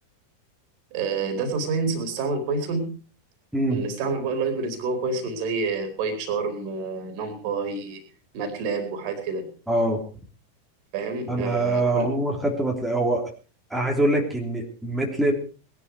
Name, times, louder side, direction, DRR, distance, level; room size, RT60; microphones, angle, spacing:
voice 1, 0.9-2.9 3.7-8.0 8.3-9.5 10.9-12.1, right 4 dB, 45° right, 6 dB, 4.2 m, -28 dB
voice 2, 9.7-10.0 11.3-13.3 13.7-15.3, right 1 dB, 5° right, -1 dB, 3.4 m, -24 dB
20.5 x 11.5 x 4.9 m, 0.36 s
figure-of-eight pair, 90°, 0 cm